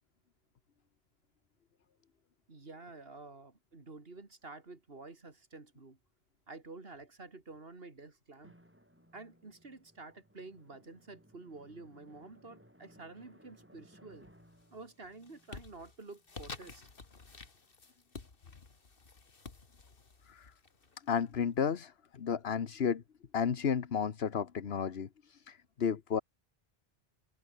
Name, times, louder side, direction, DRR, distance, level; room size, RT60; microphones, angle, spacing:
voice 1, 2.5-6.0 6.5-8.5 9.1-14.3 14.7-16.9, right 3 dB, 70° right, 3.0 m, -50 dB
Drum, 8.4-16.7, equal, 10° right, 7.6 m, -63 dB
sound 1, 14.2-14.6 15.0-21.6, left 4 dB, 65° left, 2.1 m, -51 dB
voice 2, 21.1-21.9 22.2-23.0 23.3-26.2, left 7 dB, 80° left, 1.4 m, -32 dB
omnidirectional pair, 1.0 m